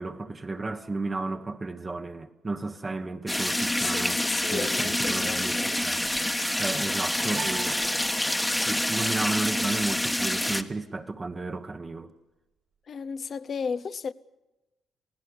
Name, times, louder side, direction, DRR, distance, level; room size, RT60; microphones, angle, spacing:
voice 1, 0.0-4.2 4.5-6.0 6.6-7.8 8.6-12.1, right 3 dB, 25° right, 1.2 m, -33 dB
sound 1, 3.3-10.6, left 1 dB, 10° left, 1.3 m, -27 dB
voice 2, 3.8-5.8 12.9-14.1, left 6 dB, 45° left, 0.8 m, -34 dB
sound 2, 7.3-8.8, right 6 dB, 75° right, 4.7 m, -42 dB
27.5 x 16.5 x 8.5 m
cardioid pair, 90°, 0 cm